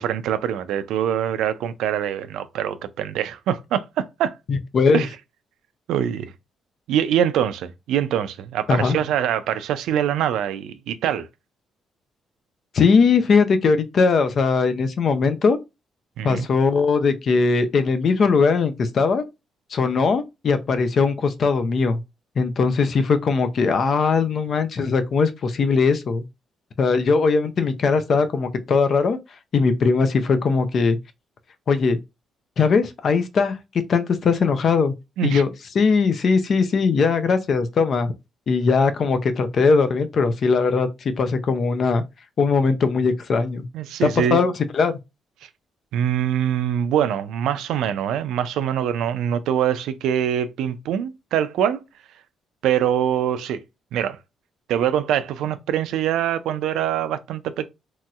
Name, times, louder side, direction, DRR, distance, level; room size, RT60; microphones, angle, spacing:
voice 1, 0.0-4.3 4.9-5.1 5.9-6.3 6.9-11.3 16.2-16.5 35.2-35.4 43.7-44.4 45.9-51.8 52.6-53.6 53.9-54.2 54.7-57.7, right 10 dB, 85° right, 0.3 m, -24 dB
voice 2, 4.5-5.0 8.7-9.0 12.7-15.6 16.2-19.2 19.7-22.0 22.4-26.2 26.8-29.2 29.5-31.0 31.7-32.0 32.6-33.6 33.9-34.9 35.2-35.5 35.8-38.1 38.5-42.0 42.4-43.6 44.0-44.9, left 4 dB, 55° left, 0.5 m, -20 dB
3.0 x 2.7 x 2.3 m
cardioid pair, 90°, 0 cm